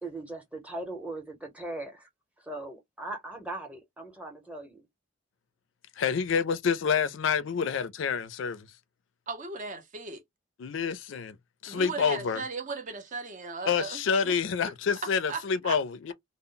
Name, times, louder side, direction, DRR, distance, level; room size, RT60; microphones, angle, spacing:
voice 1, 0.0-2.1 2.4-4.8, right 2 dB, 5° right, 0.8 m, -39 dB
voice 2, 6.0-8.7 10.6-11.4 11.6-12.4 13.7-16.1, left 6 dB, 65° left, 0.4 m, -28 dB
voice 3, 9.3-10.2 11.7-14.4 15.0-15.8, right 4 dB, 40° right, 0.6 m, -37 dB
2.1 x 2.0 x 3.7 m
head